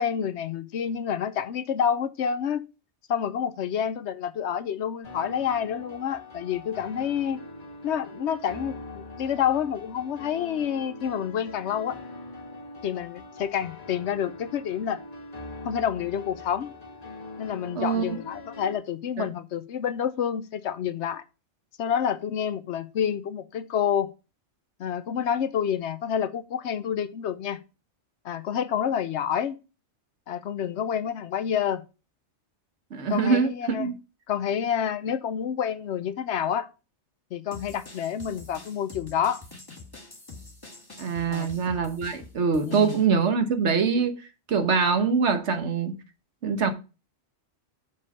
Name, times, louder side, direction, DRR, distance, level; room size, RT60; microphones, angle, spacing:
voice 1, 0.0-2.6 3.1-7.4 7.8-12.0 12.8-15.0 15.6-16.7 17.4-21.2 21.8-24.1 24.8-27.6 28.2-29.6 30.3-31.8 33.1-33.9 34.3-36.7 37.3-39.4 41.3-41.5 42.6-43.0, left 8 dB, 75° left, 1.0 m, -28 dB
sound 1, 5.0-18.7, left 2 dB, 35° left, 1.5 m, -42 dB
voice 2, 17.8-18.2 19.2-19.3 32.9-33.5 33.8-33.9 41.0-44.2 44.5-46.0 46.4-46.7, right 5 dB, 75° right, 1.4 m, -24 dB
sound 2, 37.5-43.1, left 3 dB, 20° left, 1.7 m, -45 dB
6.5 x 5.5 x 5.4 m
omnidirectional pair, 1.2 m